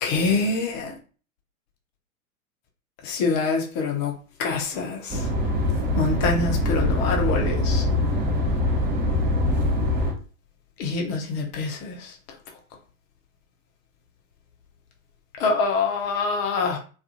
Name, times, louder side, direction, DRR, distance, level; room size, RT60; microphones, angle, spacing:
voice 1, 0.0-0.9 3.0-4.1 4.4-5.3 6.0-7.8 10.8-12.1 15.4-16.8, left 4 dB, 30° left, 0.5 m, -25 dB
sound 1, 5.1-10.1, left 1 dB, 20° right, 0.6 m, -23 dB
2.4 x 2.3 x 2.5 m
figure-of-eight pair, 90°, 43 cm